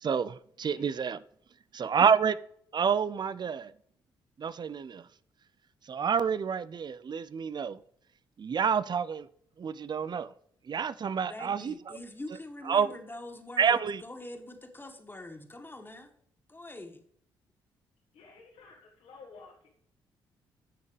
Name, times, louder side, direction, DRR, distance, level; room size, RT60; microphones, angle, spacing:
voice 1, 0.0-1.2 1.7-2.4 2.7-3.7 4.4-5.1 5.9-7.8 8.4-9.3 9.6-10.3 10.7-12.0 12.7-12.9 13.6-14.0, right 6 dB, 40° right, 0.6 m, -28 dB
voice 2, 11.2-16.1 16.5-17.0, left 1 dB, 20° left, 2.1 m, -44 dB
voice 3, 18.1-19.7, left 4 dB, 65° left, 2.1 m, -52 dB
15.5 x 6.4 x 3.3 m
hypercardioid pair, 45°, 12 cm